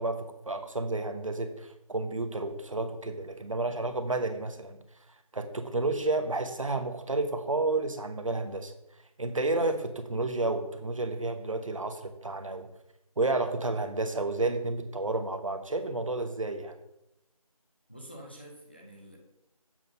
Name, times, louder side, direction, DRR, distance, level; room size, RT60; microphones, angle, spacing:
voice 1, 0.0-4.8 5.3-8.7 9.2-12.7 13.2-16.7, right 2 dB, 60° right, 7 dB, 0.9 m, -31 dB
voice 2, 17.9-19.2, equal, 15° left, -1 dB, 0.6 m, -47 dB
7.5 x 4.1 x 5.2 m, 0.85 s
figure-of-eight pair, 175°, 19 cm